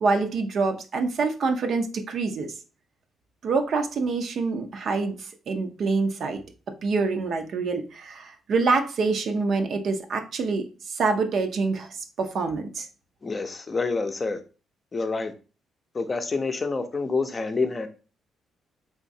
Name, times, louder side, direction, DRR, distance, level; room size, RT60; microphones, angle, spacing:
voice 1, 0.0-2.5 3.4-6.4 6.8-11.9 12.2-12.9, right 4 dB, 60° right, 6 dB, 0.6 m, -26 dB
voice 2, 13.2-14.4 14.9-15.3 15.9-17.9, left 4 dB, 30° left, 7 dB, 0.5 m, -27 dB
3.6 x 3.0 x 2.7 m, 0.34 s
cardioid pair, 90°, 0 cm